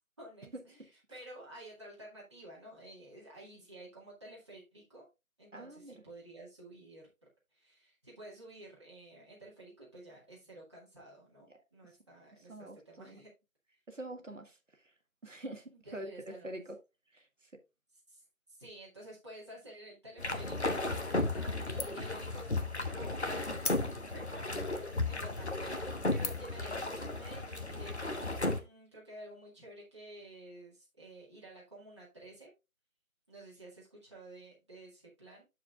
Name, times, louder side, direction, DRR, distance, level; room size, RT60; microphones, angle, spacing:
voice 1, 0.2-5.1 5.4-7.1 7.5-13.3 15.7-16.6 18.1-18.2 18.5-25.8 26.1-28.3 28.5-32.5 33.3-35.4, right 1 dB, 20° right, 2.0 m, -52 dB
voice 2, 5.5-5.9 11.5-11.6 12.3-13.2 13.9-14.6 15.2-16.8 17.1-17.5, right 1 dB, 60° right, 1.6 m, -45 dB
sound 1, 20.2-28.6, left 2 dB, 50° left, 1.2 m, -35 dB
sound 2, 21.2-21.5 21.8-22.2 22.6-22.7 23.6-24.3 24.9-25.0 25.6-25.8 26.2-26.6, left 3 dB, 80° left, 1.4 m, -39 dB
14.0 x 4.8 x 2.4 m
figure-of-eight pair, 165°, 43 cm